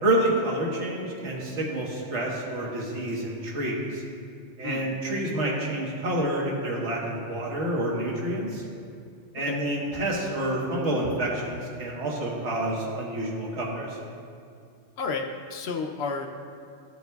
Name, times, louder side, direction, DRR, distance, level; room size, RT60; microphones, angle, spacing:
voice 1, 0.0-4.0 4.6-8.6 9.3-14.0, right 1 dB, 75° right, -3 dB, 1.5 m, -28 dB
voice 2, 15.0-16.3, left 4 dB, 70° left, 3 dB, 0.8 m, -31 dB
13.5 x 6.4 x 2.3 m, 2.3 s
omnidirectional pair, 1.2 m